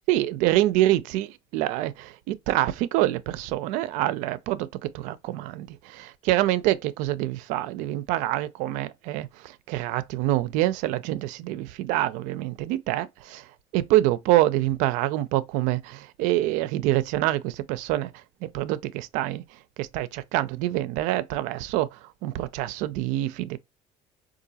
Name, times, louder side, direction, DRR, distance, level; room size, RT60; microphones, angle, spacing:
voice 1, 0.1-13.5 13.7-23.6, right 15 dB, 80° right, 0.4 m, -26 dB
3.8 x 2.5 x 2.7 m
supercardioid pair, 95°, 13 cm